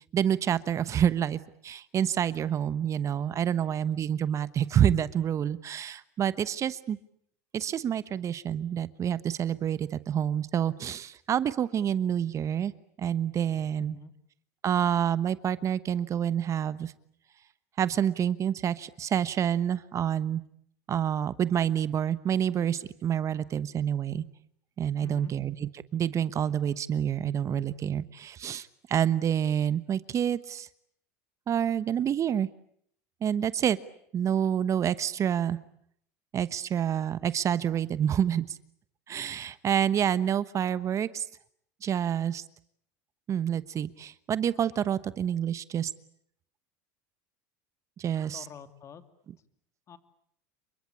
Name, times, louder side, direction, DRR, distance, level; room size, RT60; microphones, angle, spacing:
voice 1, 0.1-7.0 7.5-12.7 13.0-14.0 14.6-16.9 17.8-20.4 20.9-24.3 24.8-30.7 31.5-32.5 33.2-33.8 34.1-35.6 36.3-38.6 39.1-41.3 41.8-42.4 43.3-45.9 48.0-48.5, right 9 dB, 35° right, 16 dB, 1.1 m, -28 dB
voice 2, 13.8-14.1 25.0-25.3 48.3-49.0 49.9-50.0, left 7 dB, 35° left, 10 dB, 2.9 m, -46 dB
28.5 x 24.0 x 8.6 m, 0.67 s
hypercardioid pair, 95°, 8 cm